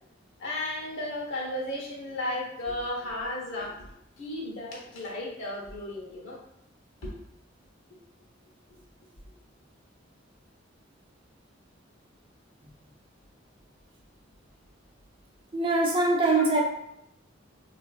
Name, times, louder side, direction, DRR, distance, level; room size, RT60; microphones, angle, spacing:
voice 1, 0.4-3.9 4.2-6.4 7.0-7.1 8.7-8.8 16.3-16.6, left 1 dB, 70° left, -3 dB, 0.8 m, -34 dB
voice 2, 15.5-16.6, right 2 dB, 25° right, -1 dB, 0.5 m, -23 dB
3.6 x 2.4 x 2.3 m, 0.77 s
head